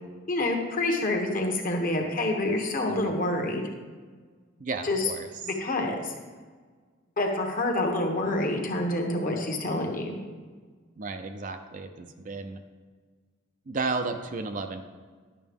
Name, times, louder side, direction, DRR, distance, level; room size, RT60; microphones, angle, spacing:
voice 1, 0.3-3.7 4.8-5.0 5.5-6.1 7.2-10.2, left 2 dB, 40° left, 2 dB, 1.1 m, -27 dB
voice 2, 4.6-5.3 11.0-12.6 13.7-14.8, right 3 dB, 40° right, 7 dB, 0.5 m, -33 dB
11.0 x 6.7 x 3.6 m, 1.5 s
head